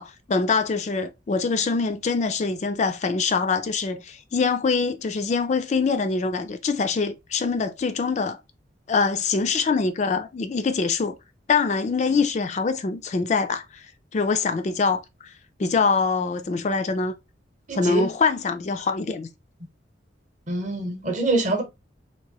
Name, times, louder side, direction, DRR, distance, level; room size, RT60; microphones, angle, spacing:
voice 1, 0.0-8.4 8.9-11.1 11.5-13.8 14.1-15.0 15.6-17.1 17.7-19.3, left 4 dB, 40° left, 0.3 m, -24 dB
voice 2, 17.7-18.1 20.5-21.6, right 2 dB, 40° right, 0.8 m, -25 dB
2.9 x 2.6 x 2.9 m
head